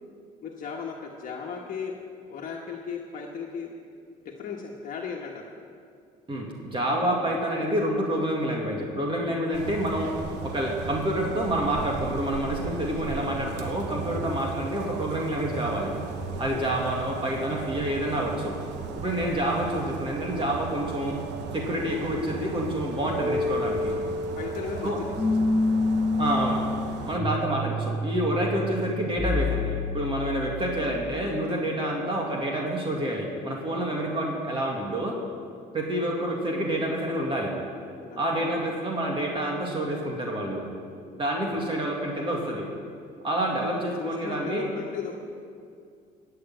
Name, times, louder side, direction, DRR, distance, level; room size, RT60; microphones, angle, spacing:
voice 1, 0.4-1.9 2.3-3.7 4.2-5.5 14.0-14.3 16.3-16.7 18.9-19.3 24.4-25.0 33.8-33.9 38.0-38.7 41.4-41.6 43.6-45.1, left 6 dB, 50° left, -1 dB, 1.4 m, -37 dB
voice 2, 6.3-10.1 10.4-16.0 16.4-18.6 19.0-21.2 21.5-23.9 24.8-25.0 26.2-26.6 27.1-35.2 35.7-37.5 38.2-40.7 41.2-42.7 43.2-44.7, right 1 dB, 30° right, -1 dB, 2.3 m, -28 dB
sound 1, 9.5-27.2, right 5 dB, 85° right, 1.1 m, -37 dB
sound 2, 23.2-31.1, left 2 dB, 5° left, 1.8 m, -28 dB
16.0 x 6.7 x 9.2 m, 2.3 s
cardioid pair, 110°, 17 cm